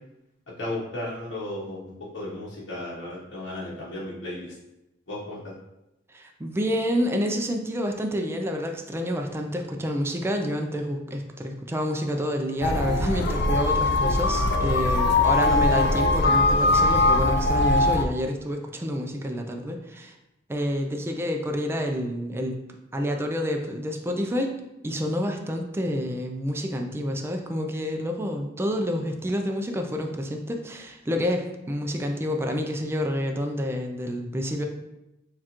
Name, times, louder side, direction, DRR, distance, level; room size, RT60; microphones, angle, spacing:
voice 1, 0.6-4.6 5.1-5.5, left 1 dB, 90° left, -7 dB, 1.0 m, -35 dB
voice 2, 6.1-20.1 20.5-22.6 22.9-24.5 24.8-34.7, equal, 15° right, 3 dB, 0.4 m, -28 dB
sound 1, 12.6-18.0, left 2 dB, 65° left, 0.4 m, -21 dB
6.5 x 2.4 x 2.9 m, 0.92 s
head